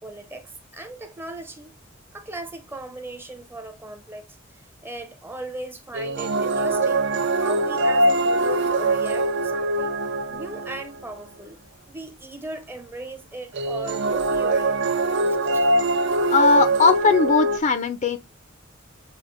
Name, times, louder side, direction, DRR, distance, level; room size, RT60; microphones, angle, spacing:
voice 1, 0.0-1.8 2.1-4.3 4.5-10.0 10.3-11.6 11.9-14.9 15.2-15.7, right 2 dB, 10° right, 0.6 m, -38 dB
sound 1, 5.9-11.0 13.5-17.6, right 2 dB, 55° right, 0.4 m, -23 dB
voice 2, 16.3-18.2, left 4 dB, 35° left, 0.4 m, -19 dB
7.2 x 2.5 x 2.4 m
head